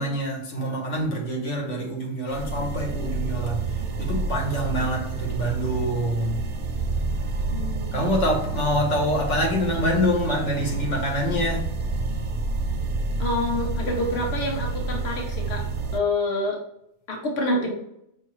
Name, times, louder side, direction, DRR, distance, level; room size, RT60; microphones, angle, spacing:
voice 1, 0.0-3.7 4.0-6.4 7.9-11.7, equal, 90° left, 1.4 m, -26 dB
sound 1, 2.3-16.0, right 4 dB, 60° right, 0.6 m, -29 dB
voice 2, 7.5-8.1 13.2-15.6 15.9-16.6 17.1-17.7, left 2 dB, 65° left, 1.0 m, -27 dB
5.3 x 2.8 x 3.0 m
omnidirectional pair, 1.2 m